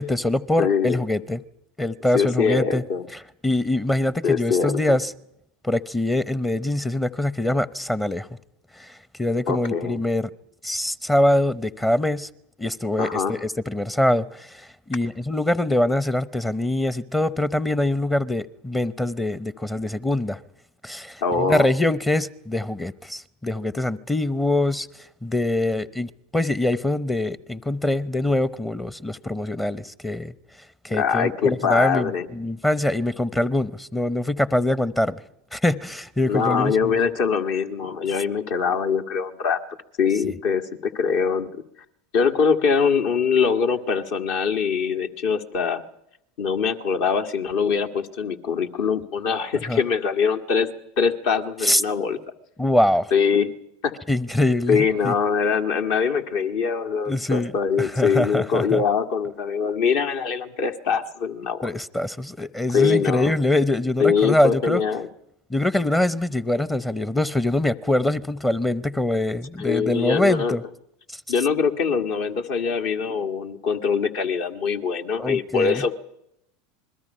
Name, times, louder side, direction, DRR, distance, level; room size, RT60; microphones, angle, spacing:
voice 1, 0.0-1.4 1.8-2.8 3.4-5.1 5.6-8.3 8.7-10.3 10.6-12.3 12.6-20.4 20.8-24.9 25.2-30.3 30.8-35.2 35.5-37.0 49.7-49.8 51.6-51.8 52.6-53.1 54.1-55.1 57.1-57.5 57.8-58.8 61.6-64.8 65.5-70.6 71.1-71.2 75.2-75.8, left 1 dB, 10° left, 0.8 m, -23 dB
voice 2, 0.6-1.0 2.1-3.0 4.2-5.0 9.5-10.0 13.0-13.4 21.2-21.7 30.9-32.3 36.3-39.6 40.0-41.5 42.1-45.8 46.4-50.7 51.0-52.2 53.1-53.5 53.8-53.9 54.7-61.7 62.7-63.3 64.0-65.1 69.6-70.6 71.3-76.0, left 6 dB, 60° left, 1.8 m, -23 dB
27.0 x 21.0 x 5.6 m
hypercardioid pair, 85°, 0 cm